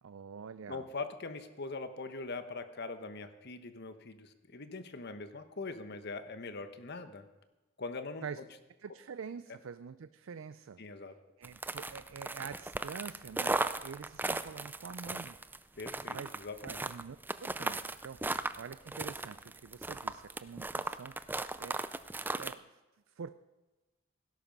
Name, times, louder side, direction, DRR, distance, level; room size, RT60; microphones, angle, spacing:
voice 1, 0.0-0.9 8.2-8.4 8.8-10.8 11.4-15.4 16.1-16.3 16.6-21.9 22.3-22.8 23.1-23.3, right 6 dB, 85° right, 13 dB, 0.4 m, -46 dB
voice 2, 0.7-7.3 7.8-8.2 10.8-11.1 15.8-16.8 18.2-18.3, left 3 dB, 55° left, 10 dB, 1.2 m, -42 dB
sound 1, 11.4-22.5, right 2 dB, 10° right, 0.4 m, -37 dB
17.5 x 11.0 x 5.3 m, 1.1 s
head